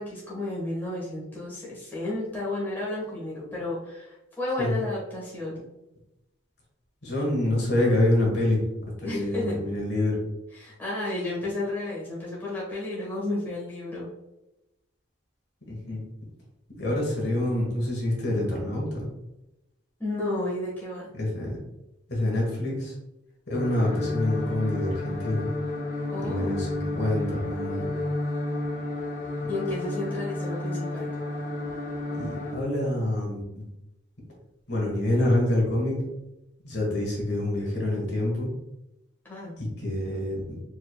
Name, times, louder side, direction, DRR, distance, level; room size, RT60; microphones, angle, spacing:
voice 1, 0.0-5.6 9.0-9.5 10.6-14.1 20.0-21.1 26.1-26.6 29.5-31.1 39.2-39.5, left 2 dB, 10° left, -7 dB, 1.3 m, -32 dB
voice 2, 7.0-8.6 9.0-10.2 15.7-16.0 16.7-19.0 21.1-21.6 22.1-22.9 23.5-25.5 26.2-27.9 32.1-33.6 34.7-36.0 36.6-38.5 39.6-40.6, left 1 dB, 55° left, -2 dB, 1.4 m, -26 dB
sound 1, 23.5-32.6, left 2 dB, 40° left, 0.7 m, -31 dB
4.6 x 3.7 x 2.3 m, 0.93 s
head